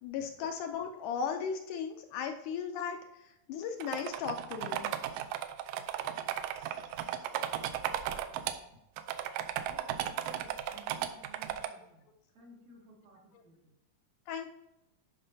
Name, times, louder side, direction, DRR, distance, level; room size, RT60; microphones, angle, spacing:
voice 1, 0.0-4.9 6.6-6.7 14.3-14.5, left 7 dB, 80° left, 5 dB, 2.0 m, -37 dB
sound 1, 3.8-8.6 9.0-11.7, right 11 dB, 80° right, 2.1 m, -35 dB
voice 2, 9.7-12.1 12.3-13.7, right 1 dB, 65° right, -1 dB, 2.5 m, -56 dB
11.0 x 5.1 x 2.7 m, 0.86 s
omnidirectional pair, 3.9 m